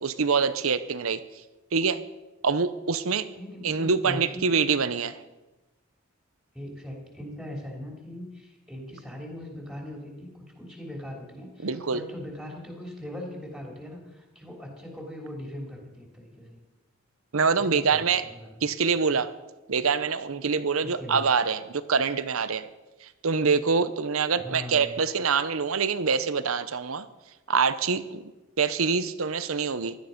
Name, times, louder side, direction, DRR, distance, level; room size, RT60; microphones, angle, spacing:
voice 1, 0.0-1.2 1.7-2.0 2.4-3.3 3.6-5.2 11.6-12.0 17.3-18.2 18.6-19.3 19.7-22.7 23.2-27.1 27.5-28.2 28.6-29.9, right 5 dB, 80° right, 14 dB, 0.8 m, -25 dB
voice 2, 3.3-4.5 6.5-16.6 17.5-18.6 20.8-21.2 24.4-24.9, left 1 dB, ahead, 0 dB, 3.1 m, -40 dB
16.5 x 12.5 x 5.2 m, 1.1 s
head